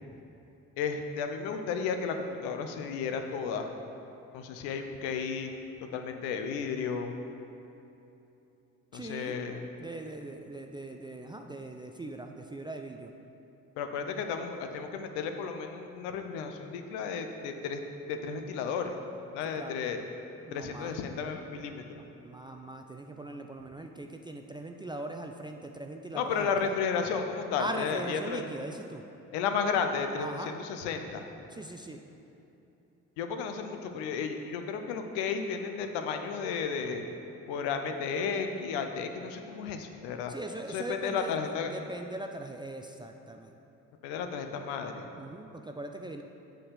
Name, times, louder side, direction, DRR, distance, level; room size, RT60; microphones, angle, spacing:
voice 1, 0.8-3.7 4.3-5.5 5.9-7.1 8.9-9.7 13.8-17.8 18.1-19.0 19.3-20.0 20.5-21.8 26.1-28.4 29.3-31.2 33.2-37.0 37.5-40.3 40.7-41.7 44.0-45.1, left 6 dB, 70° left, 6 dB, 0.7 m, -33 dB
voice 2, 8.9-9.4 9.8-13.1 19.4-19.8 20.5-21.0 22.2-26.7 27.6-29.0 30.2-30.5 31.5-32.0 40.3-43.5 45.2-46.2, right 1 dB, 10° right, 3 dB, 0.4 m, -40 dB
7.6 x 3.9 x 6.4 m, 2.9 s
hypercardioid pair, 50°, 42 cm